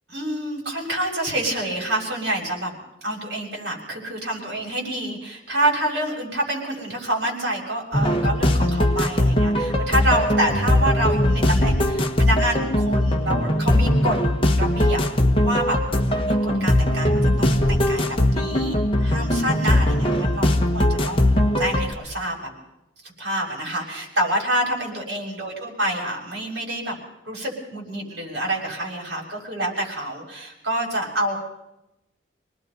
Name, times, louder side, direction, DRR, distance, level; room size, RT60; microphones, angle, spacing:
voice 1, 0.1-2.7 3.0-14.2 14.6-15.0 15.4-15.8 16.2-18.7 19.0-22.5 23.2-27.0 27.2-31.4, right 1 dB, 60° right, -1 dB, 6.7 m, -27 dB
sound 1, 7.9-21.9, left 1 dB, 30° left, 1.4 m, -20 dB
27.0 x 19.5 x 5.5 m, 0.91 s
head